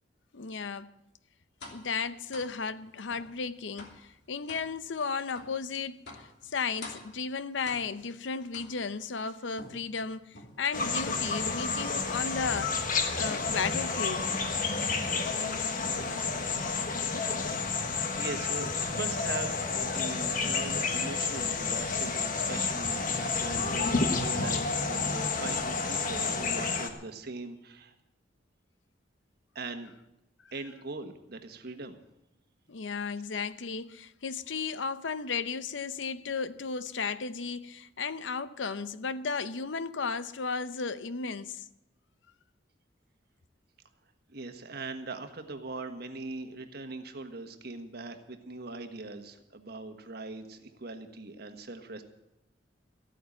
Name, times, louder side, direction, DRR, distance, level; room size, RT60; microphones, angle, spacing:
voice 1, 0.3-0.9 1.7-12.8 13.1-14.3 32.7-41.6, left 5 dB, 85° left, 0.7 m, -34 dB
sound 1, 1.6-1.9 2.3-2.6 3.1-3.3 3.8-4.1 4.5-4.7 5.3-5.6 6.1-6.3 6.8-7.2 7.7-8.1 8.5-9.0 9.6-10.7 11.0-11.4 11.8-12.1 12.5-12.8 13.3-13.7 14.2-14.5 15.0-15.5 15.8-16.3, left 2 dB, 65° left, 2.9 m, -47 dB
sound 2, 10.7-26.9, left 4 dB, 45° left, 1.4 m, -30 dB
voice 2, 18.2-27.9 29.5-29.9 30.5-32.0 44.3-52.0, right 3 dB, 60° right, 1.4 m, -40 dB
14.5 x 9.1 x 8.5 m
head